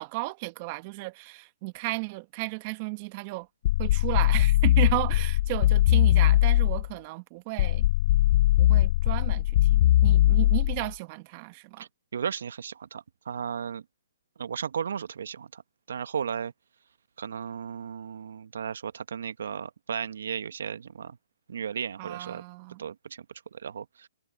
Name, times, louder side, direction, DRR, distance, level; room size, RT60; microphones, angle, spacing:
voice 1, 0.0-3.5 3.8-7.9 8.6-11.9 22.0-22.8, right 26 dB, 35° right, 1.6 m, -34 dB
sound 1, 3.7-6.9 7.6-10.9, left 14 dB, 45° left, 0.4 m, -21 dB
voice 2, 12.1-13.8 14.4-15.6 15.9-16.5 17.2-21.2 21.5-22.4 22.8-23.2 23.5-24.1, right 7 dB, 70° right, 1.3 m, -35 dB
hypercardioid pair, 145°, 0 cm